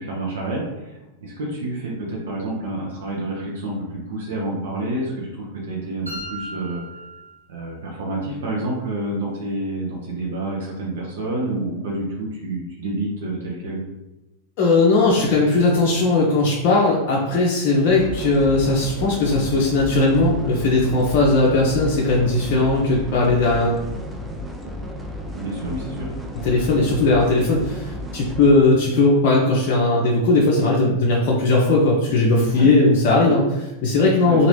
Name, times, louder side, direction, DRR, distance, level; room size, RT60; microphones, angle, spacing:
voice 1, 0.0-6.8 7.5-13.8 20.7-20.9 25.3-26.1 32.5-32.7 34.3-34.4, right 2 dB, 60° right, -3 dB, 0.6 m, -28 dB
sound 1, 6.1-8.1, right 1 dB, 85° right, 0.8 m, -37 dB
voice 2, 14.6-23.8 26.4-34.5, left 2 dB, 45° left, -3 dB, 0.5 m, -18 dB
sound 2, 17.9-28.5, left 1 dB, 5° right, 0.4 m, -33 dB
2.8 x 2.5 x 3.1 m, 1.0 s
figure-of-eight pair, 90°, 0 cm